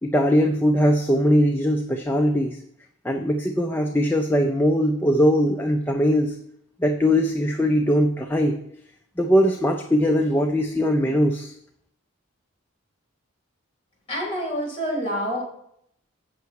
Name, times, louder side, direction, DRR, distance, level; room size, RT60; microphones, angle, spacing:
voice 1, 0.0-2.6 3.0-6.4 6.8-8.6 9.2-11.5, equal, 10° left, 3 dB, 0.4 m, -20 dB
voice 2, 14.1-15.4, equal, 30° left, -3 dB, 3.7 m, -27 dB
8.1 x 6.5 x 4.6 m, 0.72 s
head